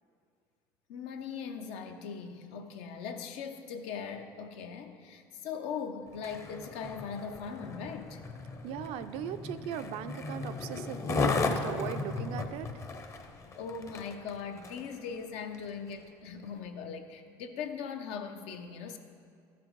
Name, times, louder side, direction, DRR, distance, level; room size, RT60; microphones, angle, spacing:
voice 1, 0.9-8.2 13.5-19.0, left 6 dB, 80° left, 6 dB, 0.8 m, -40 dB
Skateboard, 6.1-14.9 15.5-15.7, left 3 dB, 30° left, 0.7 m, -36 dB
voice 2, 8.6-12.9, right 9 dB, 70° right, 10 dB, 0.5 m, -38 dB
12.5 x 6.1 x 4.6 m, 2.3 s
cardioid pair, 125°, 10 cm